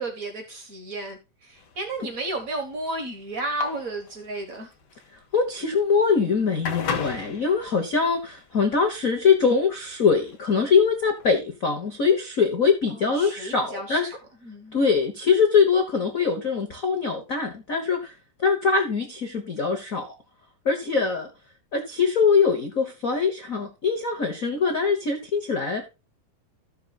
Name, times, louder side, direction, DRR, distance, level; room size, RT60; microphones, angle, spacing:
voice 1, 0.0-4.7 13.1-14.0 14.5-14.8, right 2 dB, 50° right, 1.0 m, -32 dB
sound 1, 1.6-11.4, left 5 dB, 60° left, 1.1 m, -37 dB
voice 2, 5.3-14.1 14.7-18.1 18.4-20.1 20.6-21.3 21.7-25.9, left 5 dB, 80° left, 0.7 m, -23 dB
15.0 x 6.7 x 2.4 m
omnidirectional pair, 3.7 m